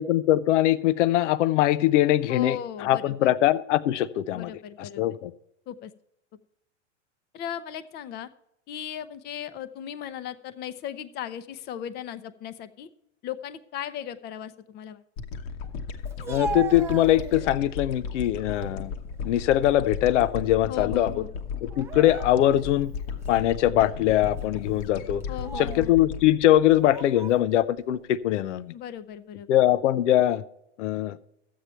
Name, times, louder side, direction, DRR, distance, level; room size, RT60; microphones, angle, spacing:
voice 1, 0.0-4.5 4.8-5.3 16.3-18.9 19.2-21.2 21.6-22.9 23.3-25.2 25.6-28.7 29.5-30.4 30.8-31.2, left 13 dB, 75° left, 16 dB, 0.6 m, -22 dB
voice 2, 2.3-3.3 4.3-5.1 5.7-5.9 7.3-8.3 8.7-12.9 13.2-15.0 20.7-21.3 25.3-25.9 28.7-29.5, left 10 dB, 25° left, 14 dB, 0.7 m, -37 dB
sound 1, 15.2-27.6, left 5 dB, 55° left, 1.2 m, -35 dB
Speech, 16.1-17.7 18.2-18.8 19.2-20.4 20.7-20.9 21.7-22.7 23.2-23.4 24.2-24.4 25.2-25.9 26.8-27.4, right 5 dB, 10° right, 0.3 m, -38 dB
12.5 x 8.5 x 4.4 m, 0.80 s
hypercardioid pair, 130°, 36 cm